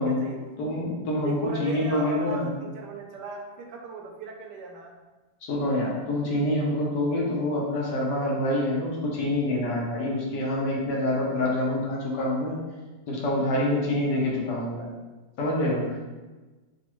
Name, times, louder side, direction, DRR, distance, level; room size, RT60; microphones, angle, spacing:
voice 1, 0.0-0.8 1.2-4.9, right 4 dB, 75° right, 2 dB, 1.1 m, -38 dB
voice 2, 0.6-2.5 5.4-12.6 13.1-14.9 15.4-15.9, left 1 dB, 75° left, -3 dB, 1.5 m, -26 dB
5.2 x 2.4 x 3.0 m, 1.2 s
omnidirectional pair, 1.9 m